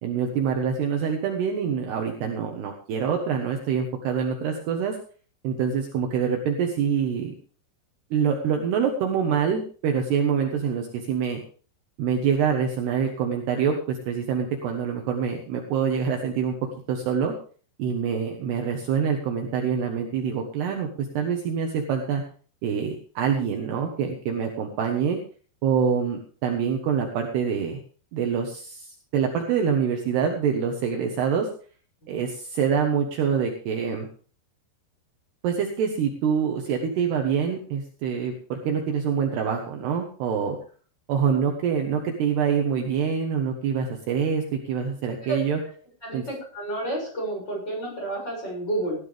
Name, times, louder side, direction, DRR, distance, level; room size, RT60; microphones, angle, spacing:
voice 1, 0.0-4.9 5.4-7.3 8.1-11.4 12.0-17.3 17.8-20.9 21.1-22.2 22.6-25.2 25.6-27.8 28.1-31.5 32.1-34.1 35.4-40.6 41.1-45.6 46.1-46.2, right 7 dB, 70° right, 2 dB, 3.0 m, -25 dB
voice 2, 46.0-49.0, right 2 dB, 20° left, -1 dB, 7.0 m, -30 dB
16.5 x 12.5 x 3.5 m, 0.41 s
omnidirectional pair, 5.6 m